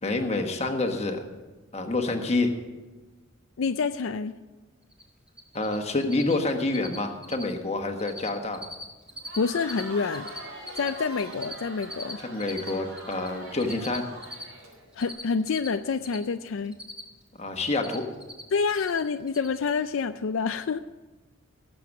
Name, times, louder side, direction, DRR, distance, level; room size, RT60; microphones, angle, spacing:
voice 1, 0.0-1.3 1.7-2.5 5.5-8.6 12.2-14.1 17.3-18.1, left 2 dB, 30° left, 4 dB, 1.3 m, -27 dB
voice 2, 3.6-4.3 9.4-10.3 10.8-12.2 15.0-16.8 18.5-20.8, left 5 dB, 65° left, 9 dB, 0.4 m, -27 dB
Cricket, 4.9-5.0 5.3-5.8 6.0-6.3 6.6-7.0 7.2-7.5 7.8-8.3 8.5-9.8 10.1-13.3 13.6-16.2 16.5-17.3 17.5-18.4 18.7-19.0 19.3-19.6, equal, 5° right, 1.5 m, -39 dB
Crowd, 9.1-15.1, right 1 dB, 70° right, 4.3 m, -43 dB
17.5 x 7.8 x 6.1 m, 1.2 s
head